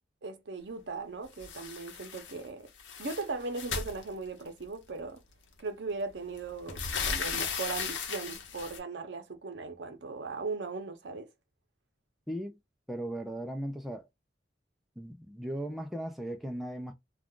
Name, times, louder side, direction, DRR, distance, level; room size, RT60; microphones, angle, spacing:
voice 1, 0.2-2.7 3.0-5.2 5.6-11.3, right 3 dB, 70° right, 0.7 m, -38 dB
sound 1, 1.4-2.4 2.7-4.6 5.6-5.7 6.1-8.8, left 5 dB, 80° left, 0.8 m, -36 dB
voice 2, 12.3-12.6 12.9-14.1 15.0-16.9, right 1 dB, ahead, 0.4 m, -37 dB
2.4 x 2.3 x 3.6 m
head